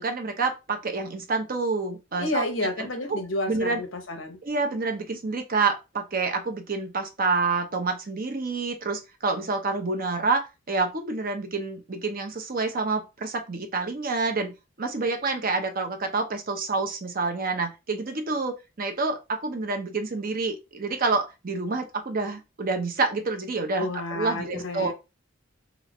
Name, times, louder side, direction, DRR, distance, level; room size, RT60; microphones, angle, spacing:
voice 1, 0.0-2.4 2.8-3.2 3.5-3.8 4.4-24.9, right 3 dB, 45° right, 0.7 m, -28 dB
voice 2, 2.2-4.4 23.8-24.9, left 2 dB, 80° left, 0.9 m, -30 dB
3.1 x 2.4 x 4.1 m
head